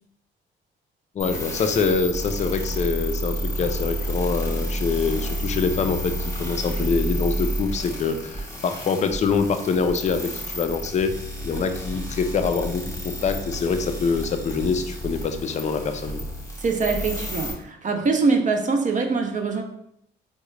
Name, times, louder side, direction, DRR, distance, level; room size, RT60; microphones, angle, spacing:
voice 1, 1.2-16.3, left 5 dB, 35° left, 7 dB, 0.4 m, -25 dB
sound 1, 1.2-17.5, equal, 15° left, 0.9 m, -30 dB
voice 2, 16.6-19.6, right 4 dB, 40° right, 4 dB, 0.5 m, -23 dB
3.6 x 2.1 x 3.1 m, 0.74 s
cardioid pair, 90°, 20 cm